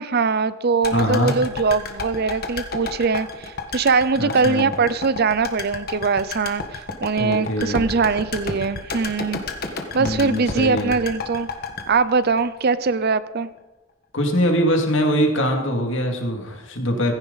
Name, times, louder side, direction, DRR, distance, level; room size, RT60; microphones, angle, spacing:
voice 1, 0.0-9.4 9.9-11.5 11.9-13.5, right 4 dB, 50° right, 15 dB, 0.5 m, -22 dB
sound 1, 0.8-13.0 13.3-13.4, left 3 dB, 45° left, 1.5 m, -32 dB
voice 2, 0.9-1.3 4.2-4.7 7.2-7.9 10.0-11.0 14.1-17.1, equal, 65° left, 2 dB, 2.5 m, -22 dB
16.0 x 15.0 x 4.1 m, 1.1 s
head